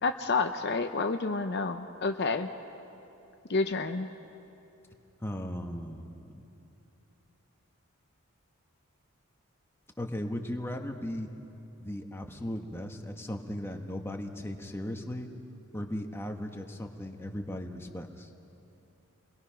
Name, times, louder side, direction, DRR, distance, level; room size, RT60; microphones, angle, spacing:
voice 1, 0.0-2.5 3.5-4.1, left 3 dB, 50° left, 7 dB, 0.7 m, -29 dB
voice 2, 5.2-6.4 10.0-11.3 11.8-15.3 15.7-18.3, left 1 dB, 10° left, 3 dB, 1.3 m, -37 dB
28.5 x 21.0 x 5.8 m, 2.9 s
head